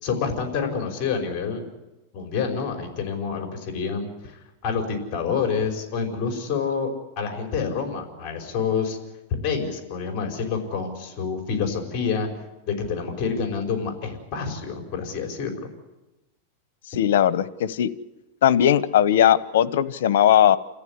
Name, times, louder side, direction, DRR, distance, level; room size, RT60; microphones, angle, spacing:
voice 1, 0.0-1.7 2.1-6.9 7.2-9.0 9.3-12.3 12.7-15.7, left 5 dB, 40° left, 3 dB, 5.2 m, -27 dB
voice 2, 17.0-17.9 18.4-20.6, left 10 dB, 80° left, 16 dB, 1.0 m, -18 dB
29.0 x 14.5 x 9.8 m, 1.0 s
supercardioid pair, 150°, 0 cm